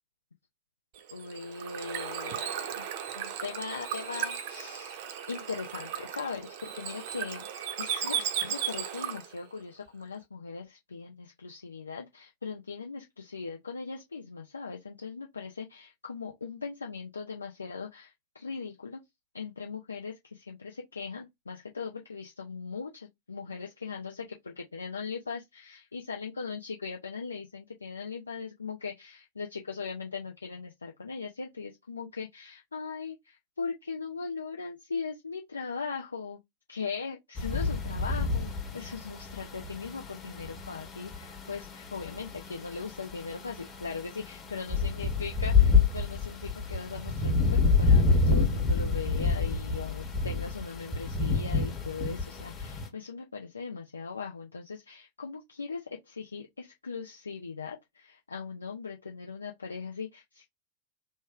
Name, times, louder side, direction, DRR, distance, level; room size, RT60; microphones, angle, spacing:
Bird / Water, 1.0-9.4, right 9 dB, 50° right, 0.5 m, -36 dB
voice 1, 1.1-7.5 7.8-19.0 19.3-36.4 36.7-60.5, left 5 dB, 75° left, 0.5 m, -39 dB
sound 1, 37.4-52.9, left 4 dB, 25° left, 1.0 m, -28 dB
3.2 x 2.1 x 3.5 m
figure-of-eight pair, 90°, 0 cm